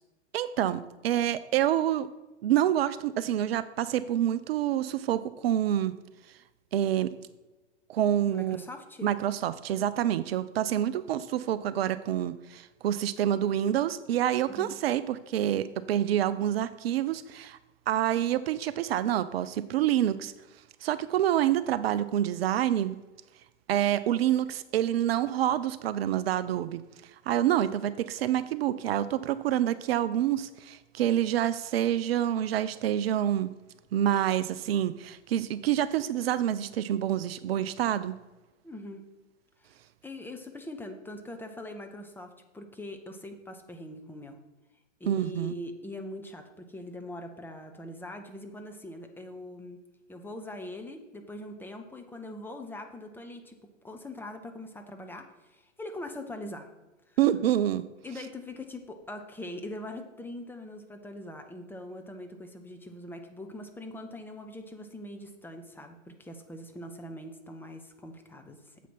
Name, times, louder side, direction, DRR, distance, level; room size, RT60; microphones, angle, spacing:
voice 1, 0.3-2.1 2.4-5.9 6.7-7.1 7.9-8.6 9.0-17.6 17.9-20.3 20.8-23.0 23.7-26.8 27.3-33.5 33.9-38.1 45.1-45.5 57.2-57.8, right 11 dB, 55° right, 14 dB, 0.5 m, -27 dB
voice 2, 8.3-9.1 14.5-14.7 38.6-39.1 39.6-39.7 40.0-44.4 45.0-49.8 50.1-56.7 57.1-57.2 58.0-68.8, left 1 dB, 5° left, 4 dB, 0.7 m, -42 dB
7.6 x 5.0 x 5.9 m, 1.1 s
figure-of-eight pair, 105°, 36 cm